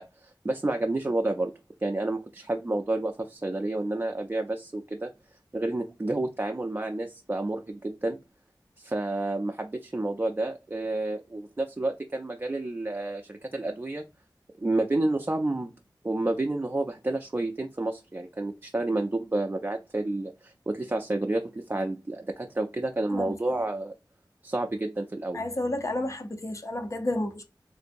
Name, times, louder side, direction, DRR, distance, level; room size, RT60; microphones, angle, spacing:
voice 1, 0.0-1.5 1.8-5.1 5.5-8.2 8.8-14.1 14.6-15.7 16.0-23.9 24.4-25.4, right 2 dB, 25° right, 0.4 m, -30 dB
voice 2, 23.1-23.6 25.3-27.4, left 1 dB, 40° left, 0.6 m, -31 dB
3.8 x 2.6 x 2.5 m
wide cardioid pair, 65°, 8 cm